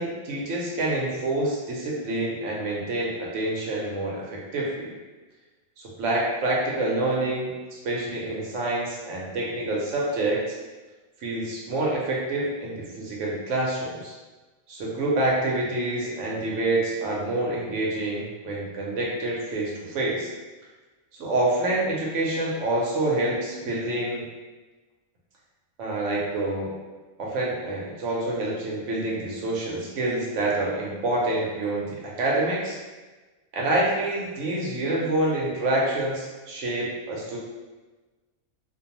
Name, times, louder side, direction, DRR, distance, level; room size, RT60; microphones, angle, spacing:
voice 1, 0.0-4.9 5.8-10.6 11.2-14.1 14.7-20.3 21.2-24.2 25.8-26.7 27.2-32.8 33.5-37.4, right 2 dB, 70° right, -4 dB, 0.9 m, -27 dB
2.6 x 2.2 x 2.8 m, 1.2 s
omnidirectional pair, 1.4 m